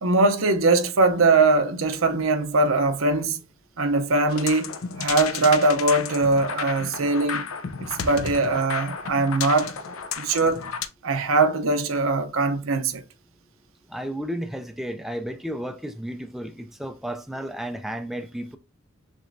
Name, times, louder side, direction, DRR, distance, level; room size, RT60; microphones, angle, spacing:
voice 1, 0.0-3.4 3.8-7.5 7.8-9.8 10.2-10.6 11.0-13.0, right 3 dB, 75° right, 0.7 m, -21 dB
sound 1, 4.3-10.9, left 6 dB, 80° left, 0.5 m, -33 dB
voice 2, 13.9-18.6, equal, ahead, 0.3 m, -33 dB
6.2 x 3.0 x 2.6 m
head